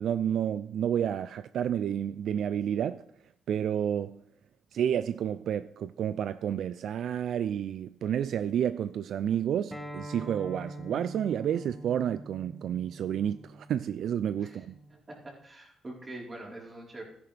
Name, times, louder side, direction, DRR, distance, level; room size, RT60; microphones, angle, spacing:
voice 1, 0.0-3.0 3.5-4.2 4.7-14.7, right 9 dB, 70° right, 0.3 m, -30 dB
Acoustic guitar, 9.7-14.9, right 1 dB, ahead, 1.7 m, -45 dB
voice 2, 14.9-17.0, right 2 dB, 25° right, 4.0 m, -44 dB
14.0 x 10.0 x 3.4 m
cardioid pair, 90°, 0 cm